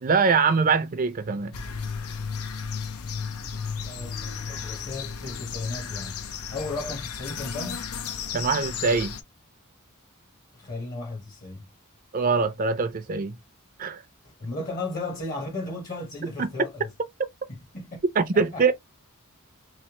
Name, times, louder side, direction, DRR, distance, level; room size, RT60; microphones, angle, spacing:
voice 1, 0.0-1.5 8.3-9.1 12.1-13.3 13.8-14.0 16.4-16.5 18.2-18.7, right 5 dB, 40° right, 0.5 m, -23 dB
sound 1, 1.5-9.2, left 6 dB, 90° left, 0.7 m, -34 dB
voice 2, 3.8-6.2 6.5-7.8 10.5-11.7 14.2-16.9 17.5-18.0 18.3-18.7, left 2 dB, 40° left, 1.0 m, -35 dB
3.2 x 3.2 x 2.9 m
head